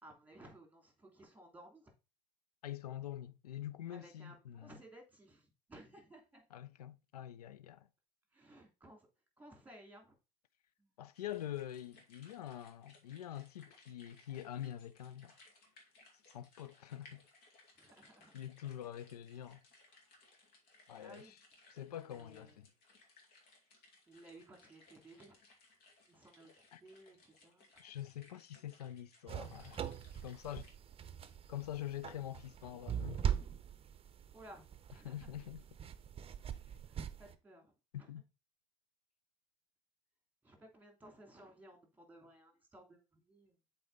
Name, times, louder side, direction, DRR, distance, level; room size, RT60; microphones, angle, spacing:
voice 1, 0.0-1.9 3.9-6.5 8.3-9.1 9.4-10.2 10.8-10.9 17.8-18.3 21.0-21.3 21.8-22.6 24.1-25.4 26.1-27.9 34.3-34.6 34.9-35.3 36.9-38.1 40.4-43.6, right 1 dB, 10° right, 2.8 m, -58 dB
voice 2, 2.6-4.7 6.5-7.9 11.0-15.3 16.3-17.2 18.3-19.6 20.9-21.4 21.7-22.7 26.7-26.8 27.8-30.7 31.5-33.2 35.0-35.7 37.9-38.2, left 11 dB, 85° left, 0.5 m, -45 dB
sound 1, 11.1-30.7, left 2 dB, 55° left, 2.4 m, -65 dB
sound 2, 29.3-37.3, right 9 dB, 30° right, 0.7 m, -41 dB
7.7 x 4.2 x 4.0 m
hypercardioid pair, 75°, 19 cm